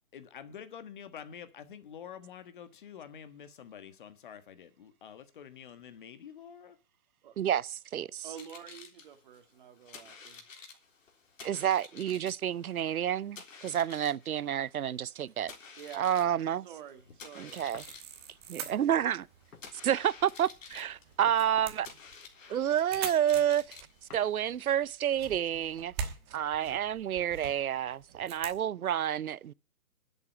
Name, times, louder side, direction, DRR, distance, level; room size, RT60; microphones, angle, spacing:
voice 1, 0.1-6.8, left 8 dB, 35° left, 1.4 m, -47 dB
voice 2, 7.4-8.2 11.4-15.5 15.9-16.7 17.4-17.8 18.5-19.3 19.8-21.9 22.5-23.8 24.1-29.5, right 10 dB, 70° right, 0.7 m, -29 dB
sound 1, 8.2-24.6, left 5 dB, 60° left, 3.7 m, -52 dB
voice 3, 8.2-10.4 15.8-16.2 16.6-17.6, right 9 dB, 35° right, 2.0 m, -48 dB
sound 2, 17.5-28.6, right 7 dB, 15° right, 1.3 m, -45 dB
sound 3, 17.7-18.0 18.6-18.8 19.5-19.8 21.2-22.0 24.1-24.4 24.9-25.0 26.7-27.4, left 5 dB, 85° left, 1.9 m, -54 dB
11.0 x 8.1 x 8.4 m
hypercardioid pair, 160°, 45 cm